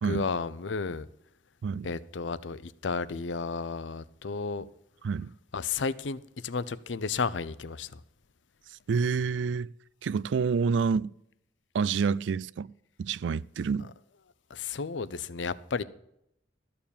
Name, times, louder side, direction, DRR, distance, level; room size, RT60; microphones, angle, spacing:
voice 1, 0.0-1.1 1.8-4.6 5.5-8.0 14.5-15.8, left 4 dB, 85° left, 0.6 m, -33 dB
voice 2, 8.9-9.7 10.0-11.1 11.7-12.7 13.0-13.9, right 5 dB, 80° right, 0.4 m, -28 dB
13.0 x 7.0 x 7.1 m
head